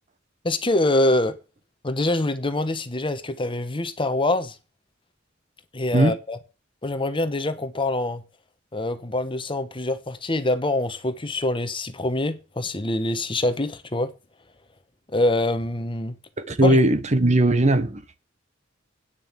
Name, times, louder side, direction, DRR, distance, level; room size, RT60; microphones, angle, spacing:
voice 1, 0.4-1.4 1.8-4.6 5.7-6.4 6.8-8.2 8.7-14.1 15.1-16.2 16.6-16.8, left 2 dB, 25° left, 1.1 m, -25 dB
voice 2, 16.5-18.0, right 1 dB, 35° right, 1.0 m, -18 dB
9.3 x 6.9 x 7.4 m
head